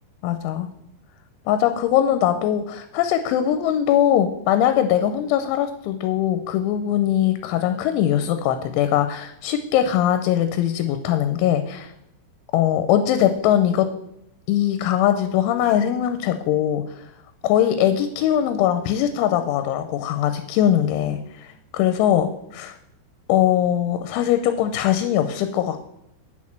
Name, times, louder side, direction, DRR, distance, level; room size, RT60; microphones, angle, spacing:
voice 1, 0.2-0.7 1.5-11.9 12.5-13.9 14.5-17.1 17.4-22.8 23.3-25.8, left 10 dB, 80° left, 9 dB, 3.0 m, -21 dB
8.7 x 6.4 x 7.2 m, 0.81 s
omnidirectional pair, 5.6 m